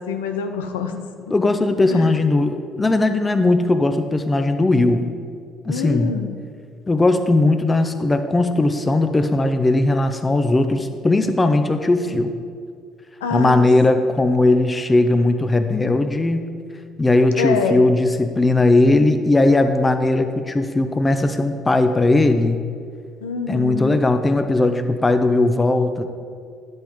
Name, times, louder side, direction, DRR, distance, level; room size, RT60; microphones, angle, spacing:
voice 1, 0.0-1.1 1.9-2.2 5.7-6.3 13.2-13.7 17.4-17.8 23.2-24.1, left 5 dB, 90° left, 6 dB, 0.6 m, -26 dB
voice 2, 1.3-5.0 5.6-6.1 6.9-12.3 13.3-16.4 17.0-22.6 23.5-26.0, left 2 dB, 25° left, 8 dB, 0.8 m, -18 dB
10.0 x 7.9 x 3.7 m, 2.2 s
hypercardioid pair, 60°, 0 cm